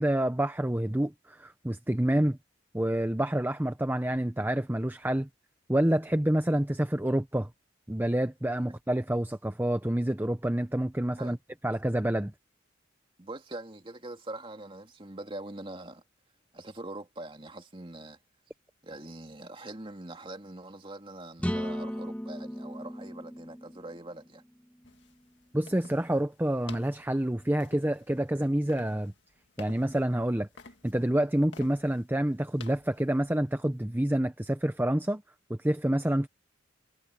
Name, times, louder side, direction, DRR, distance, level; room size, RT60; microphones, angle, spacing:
voice 1, 0.0-2.4 2.7-5.3 5.7-7.5 7.9-11.4 11.6-12.3 25.5-29.1 29.6-30.5 30.8-35.2 35.5-36.3, right 1 dB, 10° right, 0.7 m, -28 dB
voice 2, 13.2-16.0 16.5-18.2 18.8-24.4, right 2 dB, 25° right, 2.6 m, -43 dB
sound 1, 21.4-25.2, equal, 5° left, 2.5 m, -36 dB
sound 2, 24.8-33.8, left 4 dB, 65° left, 2.1 m, -53 dB
head